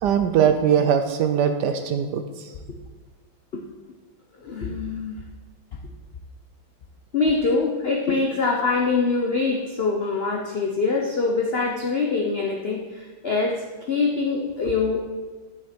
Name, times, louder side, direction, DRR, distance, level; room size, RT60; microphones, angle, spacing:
voice 1, 0.0-2.2, right 8 dB, 70° right, 7 dB, 1.0 m, -20 dB
voice 2, 4.4-5.2 7.1-15.0, left 4 dB, 75° left, 0 dB, 0.5 m, -24 dB
10.5 x 6.3 x 4.4 m, 1.3 s
omnidirectional pair, 2.2 m